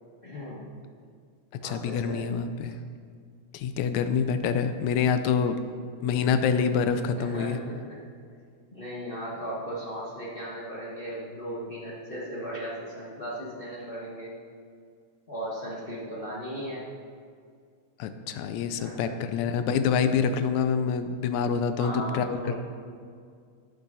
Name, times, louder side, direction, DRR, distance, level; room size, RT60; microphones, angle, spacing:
voice 1, 0.2-0.6 1.6-2.2 7.1-8.0 8.7-14.3 15.3-16.8 18.6-19.1 21.8-22.5, equal, 35° left, -6 dB, 0.9 m, -37 dB
voice 2, 1.6-2.7 3.5-5.6 6.0-7.6 18.0-22.5, left 6 dB, 75° left, 9 dB, 1.9 m, -26 dB
13.0 x 8.7 x 4.1 m, 2.2 s
omnidirectional pair, 3.5 m